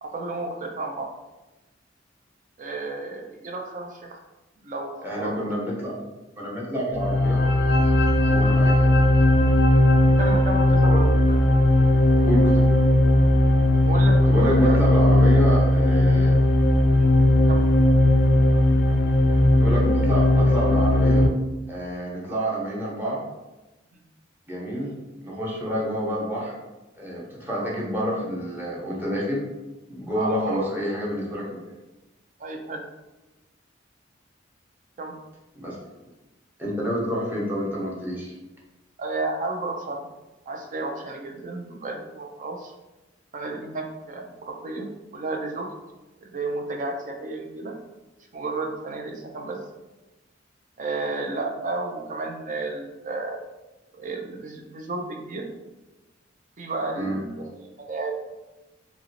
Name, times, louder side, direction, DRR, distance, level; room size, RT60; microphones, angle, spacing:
voice 1, 0.0-1.1 2.6-4.2 4.6-5.5 8.4-8.6 10.2-11.5 13.8-14.8 17.0-17.1 17.5-17.6 23.9-24.0 27.6-27.7 30.1-30.7 32.4-32.8 35.0-35.2 39.0-40.1 40.5-42.7 43.3-45.7 46.2-47.8 48.3-49.6 50.8-53.4 53.9-55.5 56.6-58.3, right 3 dB, 45° right, 3 dB, 0.4 m, -32 dB
voice 2, 5.0-6.1 6.4-7.4 8.3-8.7 12.2-12.7 14.3-16.4 19.6-21.3 21.7-23.2 24.5-24.9 25.2-26.5 27.0-29.4 29.9-31.6 35.6-35.8 36.6-38.3 56.9-57.2, equal, 10° right, -5 dB, 0.8 m, -28 dB
sound 1, 6.9-21.3, left 1 dB, 60° left, 0.3 m, -18 dB
2.9 x 2.7 x 2.8 m, 1.1 s
head